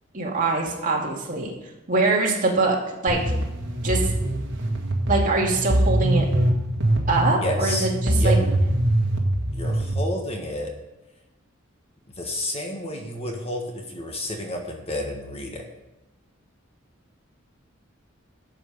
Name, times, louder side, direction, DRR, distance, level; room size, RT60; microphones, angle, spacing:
voice 1, 0.1-1.5 1.9-2.8 3.0-3.2 3.8-4.1 5.1-6.3 7.1-8.4, right 3 dB, 40° right, -1 dB, 2.4 m, -23 dB
sound 1, 3.1-9.9, right 1 dB, 60° right, 1.8 m, -23 dB
voice 2, 7.4-8.4 9.5-10.7 12.1-15.6, left 1 dB, 30° left, 2 dB, 1.5 m, -31 dB
12.5 x 7.9 x 5.3 m, 0.95 s
head